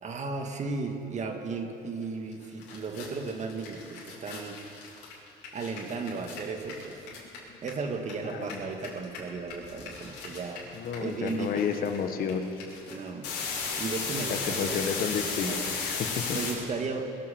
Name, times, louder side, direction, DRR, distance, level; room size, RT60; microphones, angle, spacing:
voice 1, 0.0-4.6 5.5-7.1 7.6-10.6 11.0-11.7 12.9-13.4 13.8-15.7 16.3-17.1, right 4 dB, 45° right, 5 dB, 1.7 m, -35 dB
sound 1, 2.3-2.4 2.6-8.1 8.4-16.5, left 5 dB, 85° left, 3.9 m, -35 dB
voice 2, 8.2-8.6 10.7-12.4 14.3-16.2, left 6 dB, 60° left, 6 dB, 1.3 m, -31 dB
21.0 x 7.8 x 7.7 m, 2.9 s
cardioid pair, 110°, 17 cm